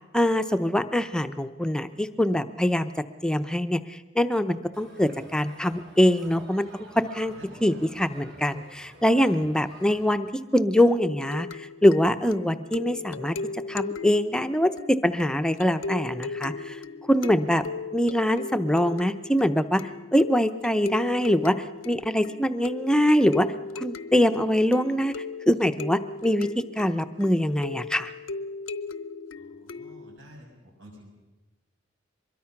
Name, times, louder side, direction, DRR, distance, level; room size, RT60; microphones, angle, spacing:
voice 1, 0.1-2.9 3.2-7.3 7.6-10.3 10.5-11.5 11.8-13.3 13.7-16.8 17.1-17.6 17.9-19.8 20.1-21.6 21.9-23.5 23.8-25.2 25.5-28.1, equal, 5° left, 9 dB, 0.7 m, -23 dB
Crowd, 4.7-10.0, right 2 dB, 55° right, 5.6 m, -49 dB
sound 1, 11.0-30.2, left 4 dB, 80° left, 0.7 m, -38 dB
voice 2, 29.4-31.1, equal, 75° right, 0 dB, 6.6 m, -50 dB
24.0 x 22.0 x 5.9 m, 1.2 s
head